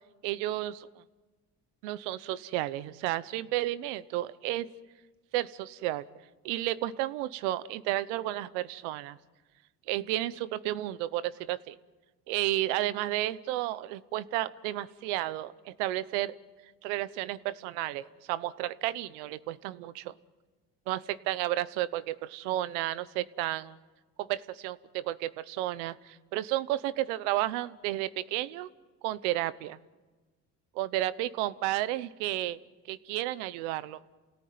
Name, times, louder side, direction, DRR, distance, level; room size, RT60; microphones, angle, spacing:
voice 1, 0.2-0.9 1.8-4.7 5.3-6.1 6.4-9.2 9.9-11.8 12.3-16.4 16.8-20.1 20.9-23.8 24.2-28.7 29.0-29.8 30.7-32.6 32.9-34.0, right 15 dB, 90° right, 16 dB, 0.9 m, -32 dB
28.5 x 17.5 x 9.4 m, 1.3 s
supercardioid pair, 80°, 34 cm